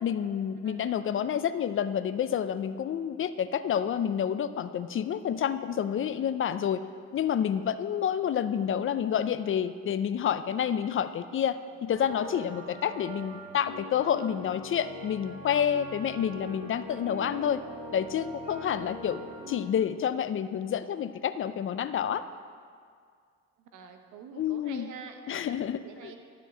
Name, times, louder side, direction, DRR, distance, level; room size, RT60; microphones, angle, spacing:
voice 1, 0.0-6.8 7.1-17.6 17.9-19.2 19.5-22.2 24.4-24.9 25.3-26.1, left 8 dB, 45° left, 12 dB, 0.4 m, -29 dB
sound 1, 11.9-19.6, left 1 dB, 20° right, 2.7 m, -43 dB
voice 2, 23.7-26.2, right 6 dB, 85° right, 5 dB, 1.0 m, -46 dB
12.0 x 4.5 x 6.2 m, 2.1 s
cardioid pair, 90°, 30 cm